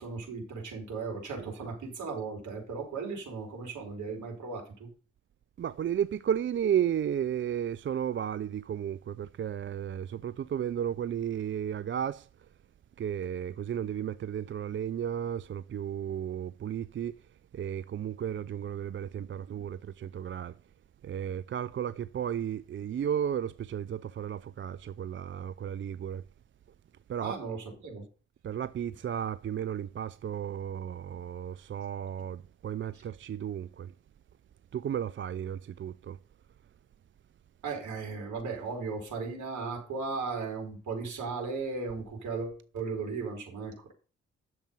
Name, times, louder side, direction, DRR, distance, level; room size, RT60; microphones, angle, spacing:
voice 1, 0.0-4.9 27.2-28.1 32.9-33.0 37.6-43.9, right 4 dB, 65° right, 4.5 m, -36 dB
voice 2, 5.6-12.3 13.0-17.2 17.5-20.5 21.0-26.2 27.1-27.3 28.4-33.9 34.7-36.2, right 9 dB, 40° right, 0.5 m, -33 dB
11.0 x 7.1 x 5.4 m
hypercardioid pair, 45°, 32 cm